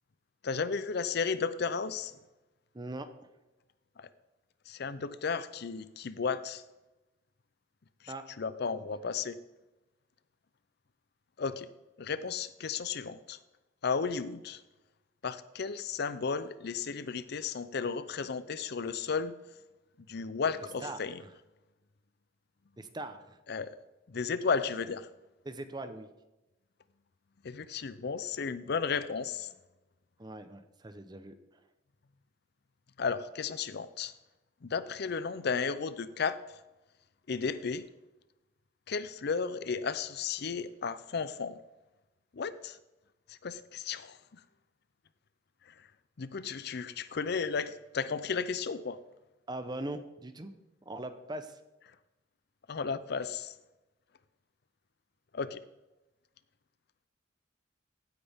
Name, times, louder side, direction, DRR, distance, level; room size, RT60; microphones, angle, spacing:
voice 1, 0.4-2.1 4.0-4.1 4.7-6.6 8.0-9.4 11.4-11.7 12.0-13.4 13.8-14.6 15.2-19.4 20.1-21.2 23.5-23.7 24.1-25.1 27.4-29.5 33.0-34.1 34.6-36.4 37.3-37.9 38.9-41.6 42.3-42.8 43.3-44.4 46.2-49.0 52.7-53.5 55.3-55.6, left 5 dB, 55° left, 14 dB, 0.5 m, -34 dB
voice 2, 2.7-3.1 8.1-8.3 20.8-21.3 22.8-23.4 25.4-26.1 30.2-31.3 49.5-50.5 50.8-51.6, right 2 dB, 20° right, 10 dB, 0.8 m, -41 dB
15.5 x 9.5 x 3.6 m, 1.0 s
head